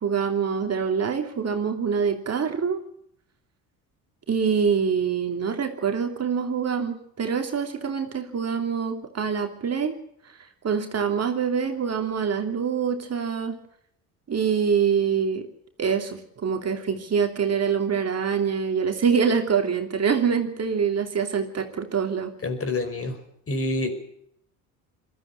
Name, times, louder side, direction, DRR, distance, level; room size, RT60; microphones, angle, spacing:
voice 1, 0.0-2.8 4.3-10.0 10.2-10.4 10.6-13.6 14.3-15.5 15.8-22.3, right 6 dB, 35° right, 4 dB, 2.9 m, -25 dB
voice 2, 22.4-23.2 23.5-23.9, left 2 dB, 30° left, 8 dB, 5.4 m, -27 dB
21.5 x 14.0 x 9.8 m, 0.72 s
hypercardioid pair, 70°, 44 cm